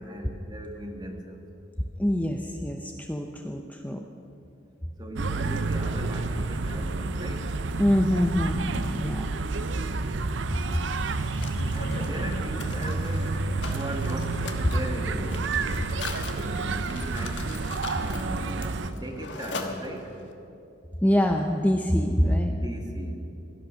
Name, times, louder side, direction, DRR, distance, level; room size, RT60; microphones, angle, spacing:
voice 1, 0.0-1.4 5.0-7.6 11.7-15.6 16.3-17.5 18.0-20.2 22.5-23.3, right 1 dB, 20° right, 2 dB, 1.7 m, -38 dB
voice 2, 2.0-4.0 7.8-9.3 11.6-11.7 21.0-22.6, equal, 10° left, 3 dB, 0.6 m, -25 dB
sound 1, 5.1-18.9, right 3 dB, 85° right, 0.7 m, -30 dB
Mechanisms, 10.5-20.3, left 4 dB, 70° left, 1.4 m, -41 dB
17.0 x 12.0 x 6.3 m, 2.8 s
head